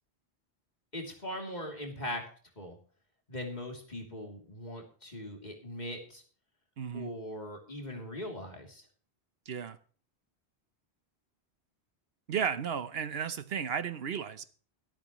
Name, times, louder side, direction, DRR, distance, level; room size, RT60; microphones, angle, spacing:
voice 1, 0.9-2.2 2.6-2.8 3.3-6.2 6.9-8.8, left 1 dB, 40° left, 3.1 m, -40 dB
voice 2, 6.8-7.1 9.5-9.8 12.3-14.5, right 7 dB, 65° right, 1.0 m, -34 dB
23.5 x 8.6 x 3.0 m
omnidirectional pair, 1.1 m